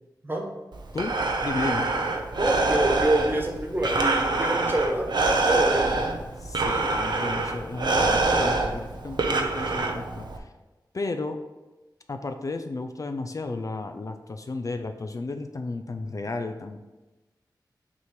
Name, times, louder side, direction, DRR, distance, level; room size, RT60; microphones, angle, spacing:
Breathing, 0.7-10.4, right 3 dB, 75° right, 0.7 m, -25 dB
voice 1, 1.4-1.9 6.4-10.5 10.9-11.4 12.1-16.9, left 3 dB, 45° left, 7 dB, 0.4 m, -33 dB
voice 2, 2.4-5.1 5.5-6.0, right 1 dB, 30° right, 1 dB, 1.3 m, -26 dB
6.0 x 3.1 x 5.8 m, 1.1 s
wide cardioid pair, 70°, 8 cm